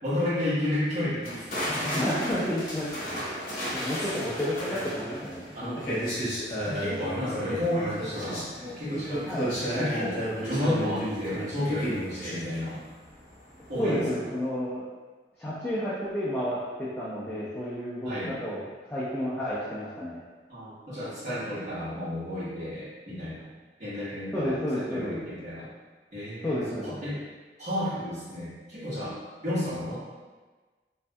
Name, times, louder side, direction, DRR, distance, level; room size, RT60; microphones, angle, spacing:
voice 1, 0.0-2.0 3.6-3.8 4.1-4.2 5.5-5.9 6.6-12.8 13.7-14.0 18.0-18.3 20.5-23.5 23.8-25.7 26.1-27.2 27.6-29.2 29.4-30.0, left 1 dB, 45° right, -14 dB, 1.4 m, -32 dB
sound 1, 1.2-13.3 13.6-13.9, equal, 50° left, 0.9 m, -33 dB
voice 2, 1.9-3.5 3.7-6.0 9.3-9.5 13.8-14.8 15.4-20.2 24.3-25.1 26.4-27.2, equal, 10° left, -10 dB, 0.4 m, -31 dB
3.2 x 2.6 x 2.2 m, 1.3 s
head